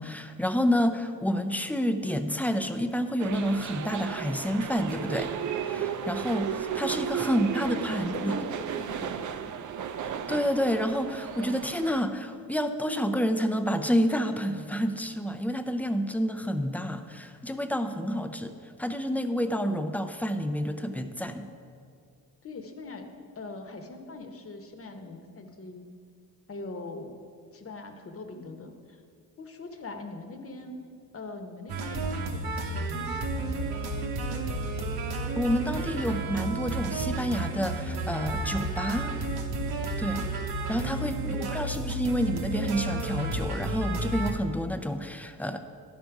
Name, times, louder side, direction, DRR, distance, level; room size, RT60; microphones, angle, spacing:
voice 1, 0.0-5.3 5.6-8.3 10.3-21.5 35.3-39.2 40.0-40.3 40.7-45.6, equal, 5° left, 8 dB, 0.5 m, -29 dB
sound 1, 3.2-12.0, right 8 dB, 55° right, 0.5 m, -34 dB
voice 2, 7.3-9.7 22.4-23.1 23.4-25.9 26.5-27.1 27.5-29.0 29.4-30.8 31.1-34.2 41.2-41.7, left 3 dB, 40° left, 5 dB, 1.1 m, -42 dB
sound 2, 31.7-44.3, right 2 dB, 85° right, 1.0 m, -32 dB
11.5 x 5.2 x 4.7 m, 2.3 s
cardioid pair, 80°, 37 cm